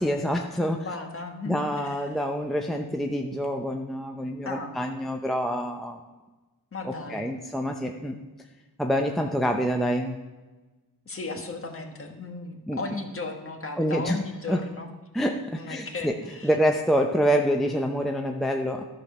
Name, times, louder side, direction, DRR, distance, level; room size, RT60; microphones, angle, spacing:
voice 1, 0.0-0.8 1.5-6.0 6.8-8.2 8.8-10.2 12.7-12.8 13.8-14.2 14.5-14.6 15.1-16.1 16.4-18.8, equal, ahead, 3 dB, 0.6 m, -26 dB
voice 2, 0.6-2.1 4.4-4.8 6.7-7.3 11.0-14.9 15.6-16.5, left 3 dB, 35° left, 3 dB, 1.5 m, -36 dB
10.5 x 4.9 x 6.6 m, 1.2 s
cardioid pair, 75°, 40 cm